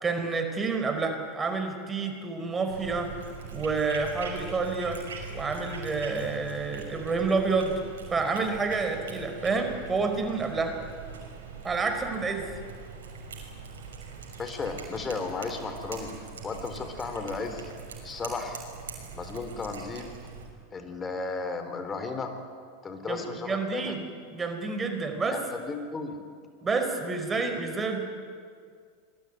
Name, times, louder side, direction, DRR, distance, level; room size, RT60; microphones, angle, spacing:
voice 1, 0.0-3.1 3.5-5.0 5.3-7.8 8.1-10.7 11.6-12.5 23.1-25.4 26.6-28.0, right 4 dB, 20° right, 6 dB, 4.7 m, -29 dB
Cat, 2.7-20.5, right 5 dB, 70° right, 6.2 m, -42 dB
voice 2, 14.4-16.1 16.4-17.7 18.0-18.6 19.1-20.1 20.7-22.3 22.8-23.9 25.3-26.2, left 4 dB, 20° left, 7 dB, 4.1 m, -34 dB
26.5 x 21.5 x 9.6 m, 2.1 s
figure-of-eight pair, 85°, 0 cm